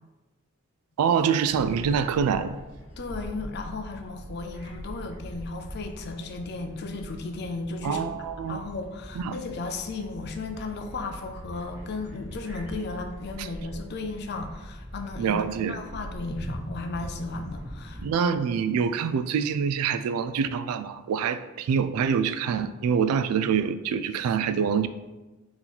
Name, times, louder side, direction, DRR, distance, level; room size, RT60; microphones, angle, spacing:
voice 1, 1.0-2.6 7.8-8.6 9.2-9.4 13.4-13.5 15.2-15.8 18.0-24.9, right 7 dB, 90° right, 15 dB, 0.3 m, -25 dB
sound 1, 1.5-18.0, equal, 5° right, 0.8 m, -42 dB
voice 2, 3.0-8.1 8.5-15.4 15.7-18.3, left 3 dB, 50° left, 5 dB, 0.4 m, -35 dB
3.9 x 3.0 x 4.0 m, 1.1 s
head